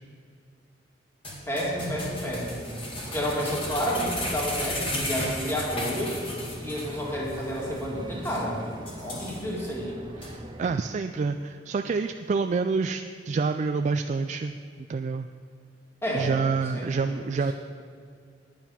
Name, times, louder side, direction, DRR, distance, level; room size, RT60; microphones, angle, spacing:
sound 1, 1.2-7.0 7.3-7.4 7.8-7.9 8.2-8.4 8.9-9.7 10.2-10.3, left 1 dB, 30° left, 2.3 m, -34 dB
voice 1, 1.5-2.6 3.1-6.2 6.6-10.0 16.0-16.3 16.7-17.4, equal, 15° left, -4 dB, 2.4 m, -30 dB
sound 2, 1.7-10.8, right 1 dB, 25° right, 0.7 m, -42 dB
voice 2, 10.2-14.6 14.9-15.3 16.1-17.5, right 4 dB, 40° right, 7 dB, 0.3 m, -27 dB
9.6 x 8.9 x 5.8 m, 2.3 s
head